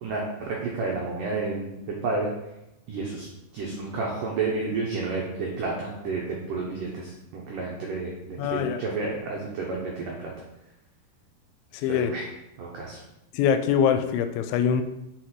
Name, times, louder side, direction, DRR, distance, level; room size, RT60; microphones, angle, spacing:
voice 1, 0.0-2.3 2.9-3.3 3.5-10.3 11.9-12.2 12.6-13.0, right 3 dB, 85° right, -3 dB, 1.8 m, -31 dB
voice 2, 8.4-8.8 11.7-12.1 13.3-14.8, left 8 dB, 85° left, 10 dB, 2.9 m, -23 dB
6.5 x 4.8 x 4.4 m, 0.91 s
omnidirectional pair, 5.2 m